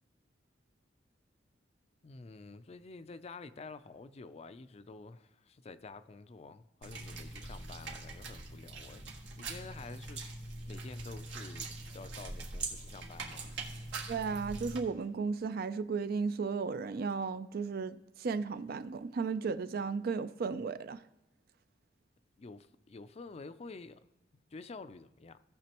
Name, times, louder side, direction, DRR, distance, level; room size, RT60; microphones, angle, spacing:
voice 1, 2.0-9.1 9.4-10.2 10.7-13.5 22.4-24.0 24.5-25.4, left 3 dB, 35° left, 0.4 m, -49 dB
sound 1, 6.8-14.8, right 3 dB, 85° right, 1.6 m, -43 dB
voice 2, 14.1-21.0, right 5 dB, 55° right, 0.4 m, -35 dB
17.0 x 6.0 x 2.9 m
head